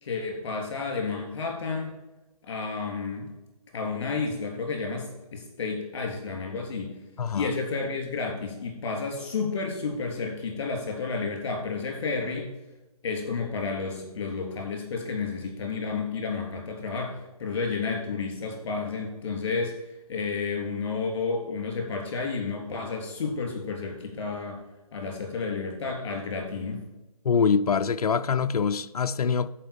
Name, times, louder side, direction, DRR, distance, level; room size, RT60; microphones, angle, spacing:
voice 1, 0.0-1.9 2.4-3.3 3.7-7.0 7.3-12.5 13.0-24.6 24.9-26.8, left 4 dB, 45° left, 3.7 m, -31 dB
voice 2, 7.2-7.5 27.2-29.5, left 6 dB, 70° left, 0.6 m, -24 dB
13.0 x 5.4 x 5.4 m
hypercardioid pair, 160°, 20 cm